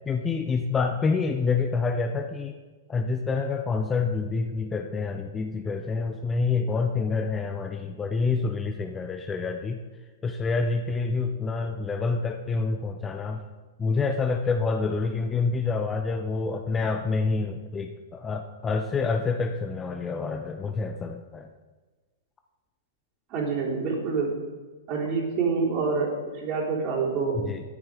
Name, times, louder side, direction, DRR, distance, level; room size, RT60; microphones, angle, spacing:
voice 1, 0.1-2.5 2.9-9.8 10.2-13.4 13.8-21.5 27.3-27.6, left 4 dB, 15° left, 6 dB, 0.6 m, -27 dB
voice 2, 23.3-24.4 24.9-27.4, right 4 dB, 35° right, -4 dB, 3.8 m, -27 dB
13.0 x 10.5 x 3.9 m, 1.3 s
figure-of-eight pair, 105°, 0 cm